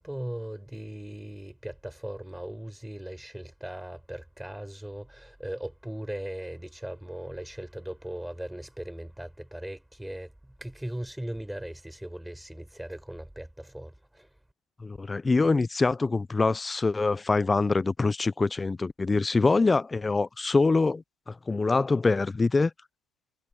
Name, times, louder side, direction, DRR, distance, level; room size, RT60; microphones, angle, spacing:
voice 1, 0.0-14.3, right 1 dB, 5° right, 4.6 m, -38 dB
voice 2, 14.8-22.7, left 3 dB, 20° left, 0.7 m, -24 dB
supercardioid pair, 85°, 0 cm